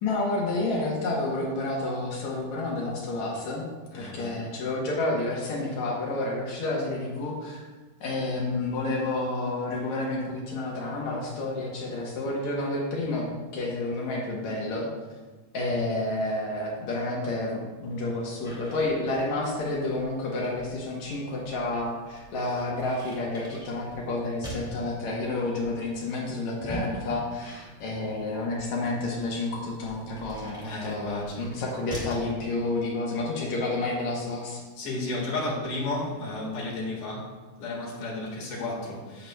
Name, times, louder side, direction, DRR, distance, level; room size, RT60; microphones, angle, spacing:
voice 1, 0.0-3.7 3.9-7.7 8.0-14.9 15.5-34.6, left 2 dB, 70° left, -3 dB, 1.7 m, -30 dB
voice 2, 3.9-4.4 30.6-31.5 34.8-37.3 37.6-39.3, left 2 dB, 55° left, -4 dB, 2.7 m, -33 dB
sound 1, 18.4-32.3, right 1 dB, ahead, 1.0 m, -43 dB
9.5 x 7.8 x 2.3 m, 1.3 s
omnidirectional pair, 4.7 m